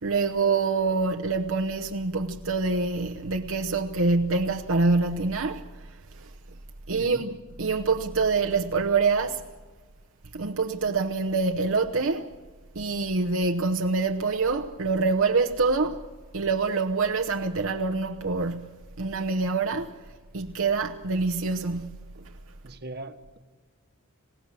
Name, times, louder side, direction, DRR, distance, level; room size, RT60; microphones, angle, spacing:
voice 1, 0.0-6.3 6.9-7.3 7.6-9.4 10.3-12.3 12.7-16.0 16.3-20.0 20.3-22.3, right 4 dB, 65° right, 1.0 m, -26 dB
voice 2, 22.6-23.4, right 2 dB, 50° right, 1.4 m, -40 dB
26.5 x 17.5 x 7.5 m
head